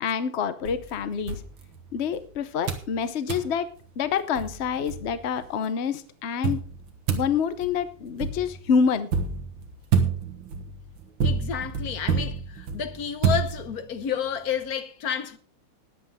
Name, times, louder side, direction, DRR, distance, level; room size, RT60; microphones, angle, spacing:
voice 1, 0.0-1.4 1.9-3.7 4.0-6.6 7.1-9.1, left 6 dB, 75° left, 0.6 m, -27 dB
sound 1, 0.6-2.2 2.7-2.9 3.3-3.5 4.0-4.1 4.4-5.5 6.4-14.0, right 6 dB, 65° right, 2.1 m, -29 dB
voice 2, 11.2-15.4, left 8 dB, 55° left, 1.2 m, -30 dB
20.0 x 7.8 x 3.5 m
omnidirectional pair, 2.3 m